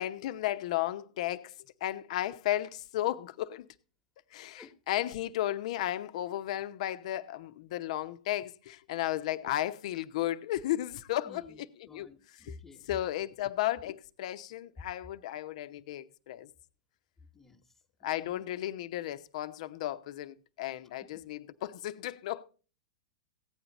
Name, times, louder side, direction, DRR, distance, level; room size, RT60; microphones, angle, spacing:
voice 1, 0.0-1.5 1.8-3.7 4.3-11.4 11.8-12.1 12.4-12.6 12.9-16.5 18.0-22.4, left 13 dB, 60° left, 0.8 m, -34 dB
voice 2, 11.2-13.1 17.2-17.7 18.0-18.4 21.1-21.2, left 3 dB, 10° left, 1.2 m, -52 dB
16.0 x 9.0 x 4.1 m
hypercardioid pair, 110°, 4 cm